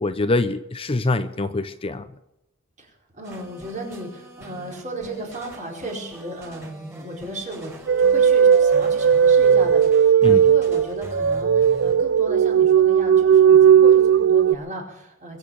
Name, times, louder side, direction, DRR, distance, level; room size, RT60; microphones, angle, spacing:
voice 1, 0.0-2.1 10.2-10.4, left 2 dB, 25° left, 11 dB, 0.6 m, -24 dB
voice 2, 2.8-7.7 8.0-15.4, right 1 dB, 40° right, -1 dB, 4.8 m, -35 dB
sound 1, 3.2-12.0, right 1 dB, 15° right, 5.1 m, -42 dB
sound 2, 7.9-14.5, right 8 dB, 55° right, 0.4 m, -16 dB
22.5 x 8.2 x 7.0 m, 0.90 s
head